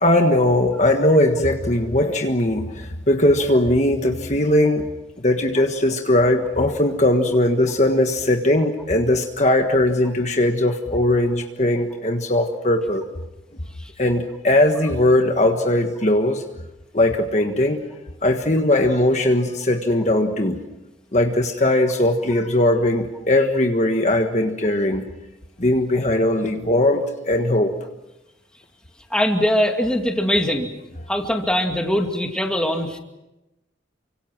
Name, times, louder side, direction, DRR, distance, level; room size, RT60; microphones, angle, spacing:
voice 1, 0.0-4.9 5.2-13.0 14.0-16.4 16.9-17.8 18.2-20.6 21.1-25.0 25.6-27.7, left 1 dB, 35° left, 4 dB, 1.5 m, -19 dB
voice 2, 29.1-30.7 31.1-33.0, equal, 5° left, 3 dB, 2.3 m, -21 dB
29.5 x 25.0 x 6.1 m, 0.96 s
head